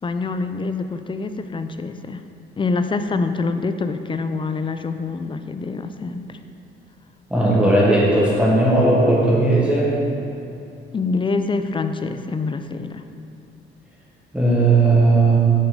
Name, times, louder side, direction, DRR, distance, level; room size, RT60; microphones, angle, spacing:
voice 1, 0.0-2.2 2.6-6.4 10.9-13.0, left 4 dB, 25° left, 9 dB, 0.4 m, -25 dB
voice 2, 7.3-9.9 14.3-15.4, right 2 dB, 5° right, -7 dB, 1.4 m, -16 dB
8.6 x 6.0 x 3.8 m, 2.6 s
cardioid pair, 90°, 20 cm